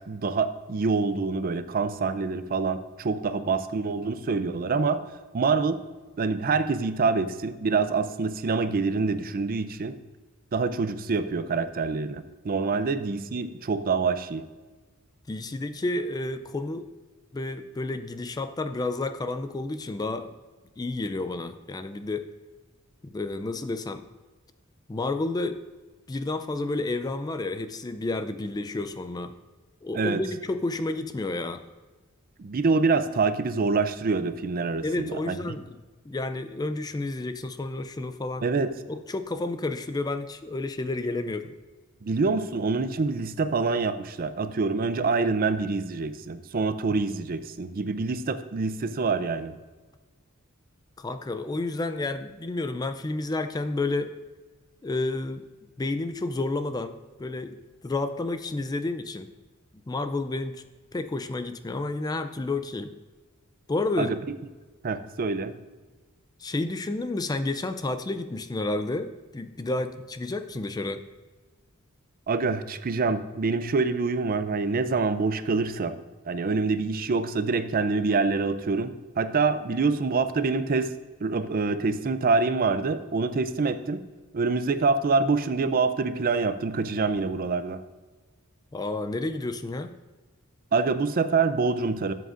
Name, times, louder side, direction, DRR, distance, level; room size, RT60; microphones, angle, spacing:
voice 1, 0.1-5.0 5.3-5.8 6.2-9.9 10.5-14.5 29.9-30.2 32.4-35.6 38.4-38.7 42.0-49.6 64.0-64.2 64.8-65.5 72.3-76.0 76.3-80.9 81.2-84.0 84.3-87.8 90.7-92.1, right 4 dB, 45° right, 12 dB, 0.5 m, -26 dB
voice 2, 15.3-16.9 17.3-20.3 20.8-22.3 23.0-24.0 24.9-25.6 26.1-29.3 29.8-31.6 34.8-35.7 36.1-38.4 38.9-41.5 51.0-54.1 54.8-55.4 55.8-57.6 57.8-59.3 59.9-60.6 60.9-62.9 63.7-64.1 66.4-71.0 88.7-90.0, left 2 dB, 20° left, 10 dB, 0.4 m, -30 dB
12.5 x 7.7 x 2.5 m, 1.3 s
head